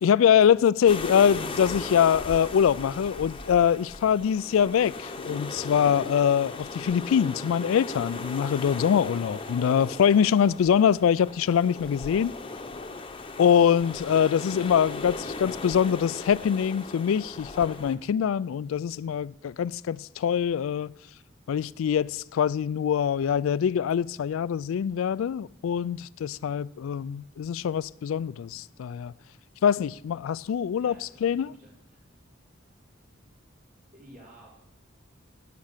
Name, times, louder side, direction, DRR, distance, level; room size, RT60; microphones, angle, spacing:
voice 1, 0.0-12.3 13.4-20.9 21.5-29.1 29.6-30.9 31.2-31.5, left 8 dB, 80° left, 0.3 m, -24 dB
sound 1, 0.9-18.0, left 3 dB, 25° left, 0.8 m, -37 dB
voice 2, 30.8-32.0 33.9-34.5, right 1 dB, 50° right, 4.8 m, -53 dB
11.5 x 8.4 x 6.6 m
head